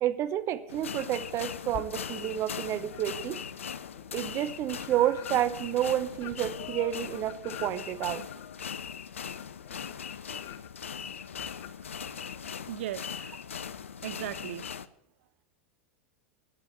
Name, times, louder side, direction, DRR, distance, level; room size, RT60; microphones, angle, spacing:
voice 1, 0.0-3.4 4.1-8.2, right 12 dB, 40° right, 14 dB, 1.0 m, -30 dB
sound 1, 0.7-14.9, left 7 dB, 85° left, 0.6 m, -40 dB
sound 2, 1.7-2.5 2.9-12.7, left 11 dB, 45° left, 0.9 m, -48 dB
voice 2, 12.7-13.4 14.0-14.6, right 13 dB, 65° right, 14 dB, 0.4 m, -38 dB
9.8 x 8.7 x 8.9 m, 0.81 s
hypercardioid pair, 90°, 7 cm